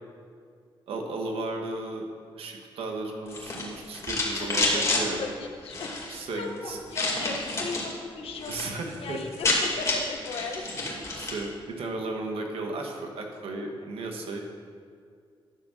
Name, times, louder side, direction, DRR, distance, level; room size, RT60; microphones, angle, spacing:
voice 1, 0.9-2.0 2.3-5.3 6.1-6.8 8.5-9.2 11.1-14.4, right 2 dB, 90° right, 2 dB, 1.5 m, -34 dB
sound 1, 3.3-5.0 5.6-6.2 6.9-7.9 8.3-8.7 8.9-9.0 9.2-11.4, left 2 dB, 35° left, 2.6 m, -28 dB
voice 2, 4.4-5.9 6.3-9.5 9.8-10.6, left 4 dB, 80° left, 3 dB, 1.4 m, -37 dB
11.0 x 6.5 x 6.6 m, 2.2 s
wide cardioid pair, 130°, 9 cm